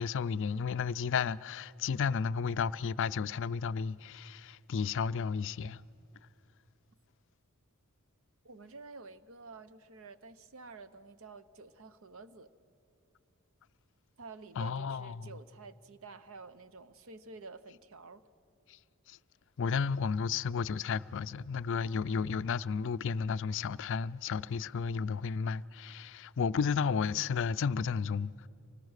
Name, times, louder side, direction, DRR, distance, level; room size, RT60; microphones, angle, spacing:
voice 1, 0.0-5.8 14.6-15.3 18.7-18.8 19.1-19.2 19.6-28.5, left 6 dB, 55° left, 0.4 m, -33 dB
voice 2, 8.4-12.5 14.2-18.2, right 4 dB, 65° right, 0.8 m, -50 dB
25.0 x 19.0 x 6.5 m
head